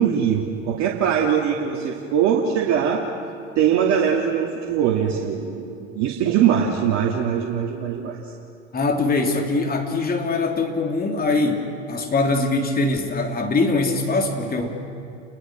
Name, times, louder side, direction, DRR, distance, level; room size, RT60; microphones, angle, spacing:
voice 1, 0.0-3.1 3.6-8.2, right 8 dB, 50° right, -1 dB, 2.5 m, -21 dB
voice 2, 8.7-14.7, left 3 dB, 25° left, 3 dB, 3.3 m, -22 dB
30.0 x 21.0 x 6.4 m, 2.6 s
hypercardioid pair, 80°, 36 cm